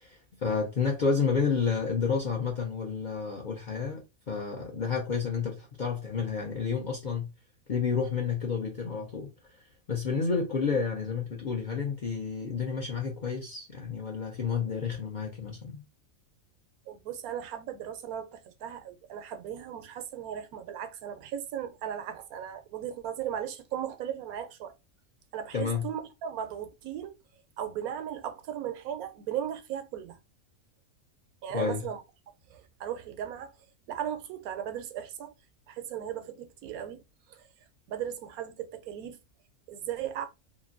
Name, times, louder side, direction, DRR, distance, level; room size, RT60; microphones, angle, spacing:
voice 1, 0.0-7.3 7.7-15.8 25.5-25.8 31.5-31.9, left 5 dB, 55° left, 0.5 m, -30 dB
voice 2, 16.9-24.7 25.3-27.1 27.6-30.2 31.4-32.0 32.5-33.5 33.9-35.3 35.7-37.0 37.3-37.5 37.9-39.2 39.7-40.3, right 9 dB, 85° right, 1.1 m, -37 dB
2.9 x 2.5 x 2.5 m
omnidirectional pair, 1.5 m